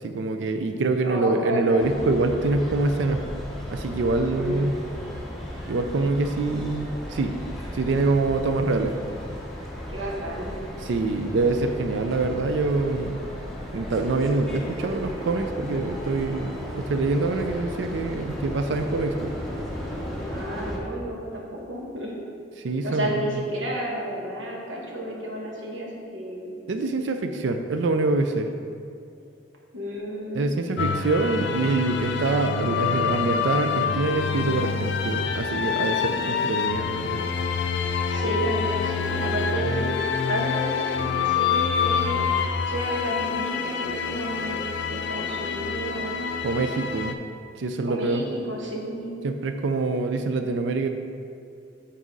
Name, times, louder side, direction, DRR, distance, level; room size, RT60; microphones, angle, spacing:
voice 1, 0.0-3.2 3.7-4.7 5.7-7.3 7.7-9.0 10.8-13.2 13.7-19.3 22.6-23.4 26.7-28.5 30.3-37.2 46.4-47.1 47.6-48.2 49.2-50.9, right 3 dB, 75° right, 6 dB, 0.4 m, -25 dB
voice 2, 1.0-1.9 4.4-4.6 4.9-5.1 9.9-10.5 20.3-22.2 22.8-26.5 29.7-30.5 38.1-39.9 40.3-42.3 42.6-46.2 47.9-49.1, right 1 dB, 90° right, -2 dB, 1.3 m, -31 dB
sound 1, 1.8-20.8, equal, ahead, 1.0 m, -35 dB
sound 2, 30.8-47.1, left 6 dB, 70° left, 0.4 m, -26 dB
6.2 x 4.1 x 5.2 m, 2.5 s
head